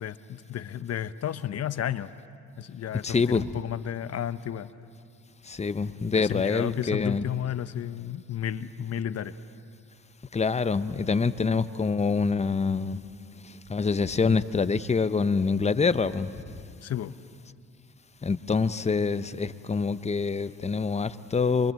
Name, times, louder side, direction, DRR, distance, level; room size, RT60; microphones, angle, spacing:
voice 1, 0.0-2.1 2.6-4.7 6.1-9.3 16.8-17.2, left 10 dB, 55° left, 14 dB, 0.9 m, -32 dB
voice 2, 3.0-3.4 5.5-7.4 10.3-13.0 13.7-16.3 18.2-21.7, left 4 dB, 20° left, 13 dB, 0.8 m, -26 dB
24.5 x 24.0 x 7.6 m, 2.3 s
cardioid pair, 90°, 30 cm